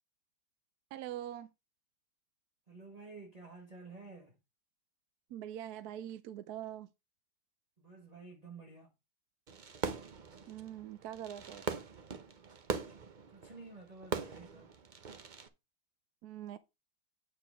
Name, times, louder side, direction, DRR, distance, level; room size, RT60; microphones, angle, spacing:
voice 1, 0.9-1.5 5.3-6.9 10.5-11.6 16.2-16.6, right 11 dB, 75° right, 1.1 m, -43 dB
voice 2, 2.7-4.4 7.8-8.9 13.3-14.7, right 3 dB, 25° right, 1.4 m, -51 dB
Fireworks, 9.5-15.5, right 5 dB, 45° right, 0.6 m, -41 dB
8.8 x 4.7 x 4.6 m
omnidirectional pair, 1.8 m